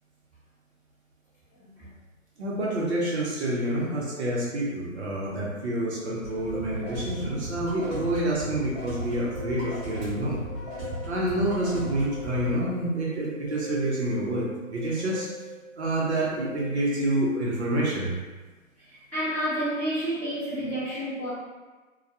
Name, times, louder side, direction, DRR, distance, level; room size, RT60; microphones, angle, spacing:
voice 1, 2.4-10.4 11.1-15.3 15.8-18.1, right 1 dB, 55° right, -5 dB, 0.7 m, -28 dB
sound 1, 6.2-12.6, right 1 dB, 30° right, 1.1 m, -36 dB
sound 2, 6.5-16.7, left 3 dB, 65° left, 0.8 m, -43 dB
voice 2, 19.1-21.3, equal, 5° left, -19 dB, 0.8 m, -29 dB
2.2 x 2.1 x 2.7 m, 1.3 s
hypercardioid pair, 145°, 41 cm